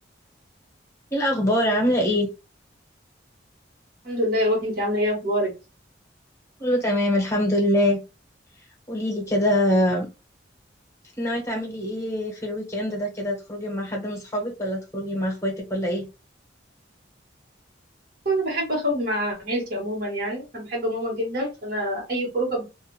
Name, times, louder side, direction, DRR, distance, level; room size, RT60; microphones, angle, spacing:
voice 1, 1.1-2.3 6.6-8.0 8.6-10.1 11.2-16.1, equal, 15° left, 1.0 m, -24 dB
voice 2, 4.0-5.5 18.2-22.6, equal, 50° right, 1.3 m, -26 dB
2.4 x 2.4 x 3.0 m
head